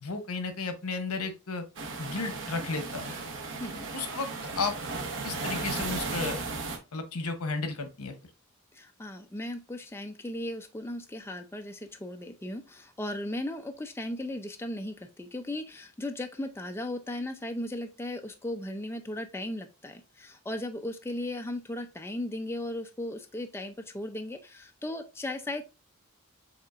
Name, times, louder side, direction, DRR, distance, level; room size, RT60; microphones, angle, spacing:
voice 1, 0.0-1.7 2.0-3.1 3.9-4.3 4.6-4.8 5.2-6.5 6.9-8.1, left 4 dB, 85° left, 7 dB, 0.9 m, -33 dB
sound 1, 1.8-6.8, right 3 dB, 60° right, 1.0 m, -35 dB
voice 2, 3.5-3.9 8.7-25.6, left 1 dB, 10° left, 6 dB, 0.4 m, -36 dB
7.1 x 2.9 x 2.5 m, 0.28 s
head